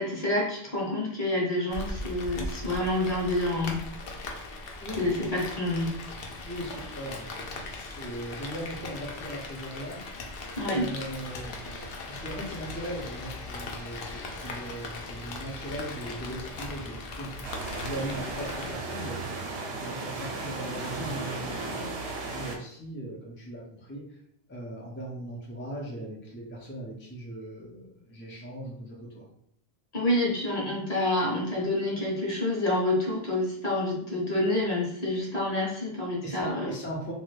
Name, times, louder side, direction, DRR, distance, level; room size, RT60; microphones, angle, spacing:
voice 1, 0.0-3.8 5.0-5.9 10.6-10.9 29.9-36.7, left 1 dB, 40° left, -4 dB, 1.0 m, -28 dB
Rain, 1.7-18.7, left 2 dB, 65° left, 0.8 m, -39 dB
voice 2, 6.4-10.2 10.7-17.5 17.7-19.2 19.7-21.9 22.3-24.0 24.5-29.3 36.2-37.1, right 1 dB, 15° left, -3 dB, 0.4 m, -39 dB
sound 1, 17.4-22.6, right 3 dB, 80° right, 0.9 m, -35 dB
2.7 x 2.5 x 3.1 m, 0.66 s
omnidirectional pair, 1.1 m